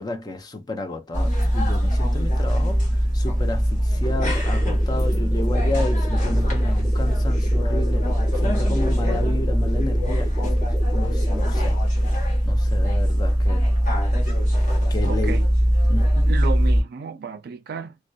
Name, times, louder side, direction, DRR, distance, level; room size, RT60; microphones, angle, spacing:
voice 1, 0.0-10.6 10.9-12.1 12.4-13.7 14.9-15.4 15.9-16.2, left 2 dB, 20° left, 0.4 m, -32 dB
sound 1, 1.1-16.8, equal, 45° left, 1.2 m, -21 dB
sound 2, 4.0-11.6, right 1 dB, ahead, 1.1 m, -38 dB
voice 2, 15.0-15.5 16.3-18.0, right 5 dB, 55° right, 0.4 m, -32 dB
2.6 x 2.2 x 2.2 m
head